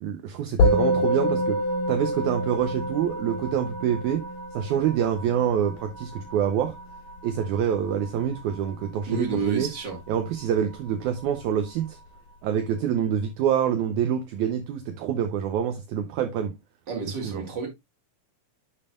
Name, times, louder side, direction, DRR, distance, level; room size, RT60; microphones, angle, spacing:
voice 1, 0.0-4.3 4.5-6.8 7.2-9.7 10.1-12.0 12.4-16.5 17.2-17.4, right 9 dB, 75° right, 2.0 m, -26 dB
Musical instrument, 0.6-10.1, left 1 dB, 60° left, 5.1 m, -28 dB
voice 2, 9.1-10.0 16.9-17.7, right 4 dB, 35° right, 2.7 m, -30 dB
10.5 x 5.6 x 2.4 m
omnidirectional pair, 3.9 m